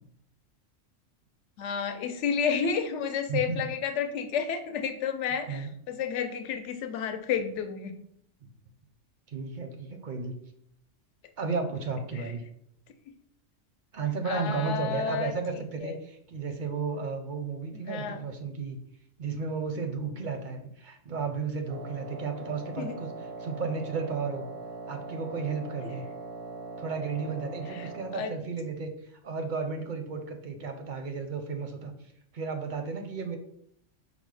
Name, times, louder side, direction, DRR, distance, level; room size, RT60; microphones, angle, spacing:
voice 1, 1.6-7.9 14.3-15.3 15.8-15.9 17.9-18.2 22.8-22.9 25.8-25.9 27.8-27.9 28.1-28.3, left 7 dB, 75° left, 7 dB, 0.9 m, -31 dB
voice 2, 3.3-3.7 5.5-5.7 9.3-10.4 11.4-12.4 13.9-18.8 19.2-24.5 24.9-26.1 26.8-31.9 32.3-33.4, right 4 dB, 55° right, 6 dB, 0.6 m, -33 dB
Wind instrument woodwind instrument, 21.7-28.3, right 3 dB, 80° right, 0.9 m, -41 dB
5.4 x 2.0 x 4.7 m, 0.71 s
omnidirectional pair, 1.3 m